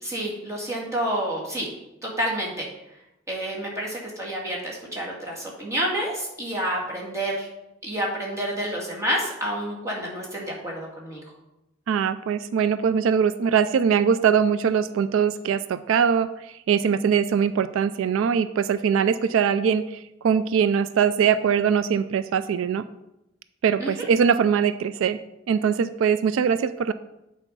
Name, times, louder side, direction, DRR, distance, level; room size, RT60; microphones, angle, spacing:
voice 1, 0.0-1.7 2.0-2.7 3.3-7.5 7.8-11.2 23.8-23.9, right 1 dB, 15° right, -4 dB, 2.0 m, -29 dB
voice 2, 11.9-22.8 23.6-25.2 25.5-26.9, right 7 dB, 85° right, 13 dB, 0.3 m, -22 dB
8.3 x 4.4 x 5.4 m, 0.91 s
head